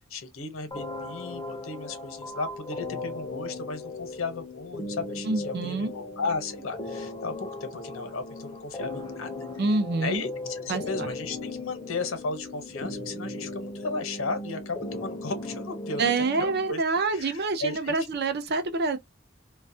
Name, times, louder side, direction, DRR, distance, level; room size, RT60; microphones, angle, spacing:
voice 1, 0.1-9.3 10.0-18.0, left 3 dB, 90° left, 0.8 m, -35 dB
sound 1, 0.7-16.7, left 2 dB, 20° left, 0.5 m, -37 dB
voice 2, 5.2-5.9 9.6-10.2 10.7-11.1 16.0-19.0, right 3 dB, 55° right, 0.6 m, -27 dB
2.3 x 2.1 x 2.6 m
head